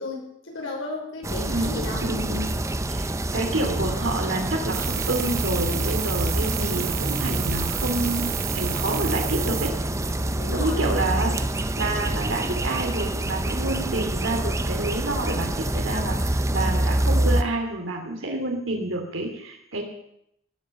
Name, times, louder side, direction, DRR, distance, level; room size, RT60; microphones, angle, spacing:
voice 1, 0.0-2.1 10.4-11.0, left 2 dB, 65° left, 0 dB, 5.3 m, -34 dB
sound 1, 1.2-17.4, right 1 dB, 15° right, 0.7 m, -26 dB
voice 2, 1.5-2.5 2.9-9.7 10.5-11.4 11.8-19.8, right 2 dB, 65° right, 2 dB, 2.7 m, -28 dB
sound 2, 4.7-9.7, right 12 dB, 45° right, 1.0 m, -32 dB
sound 3, 5.0-10.6, equal, 90° left, 7.3 m, -47 dB
18.0 x 8.7 x 7.0 m, 0.76 s
head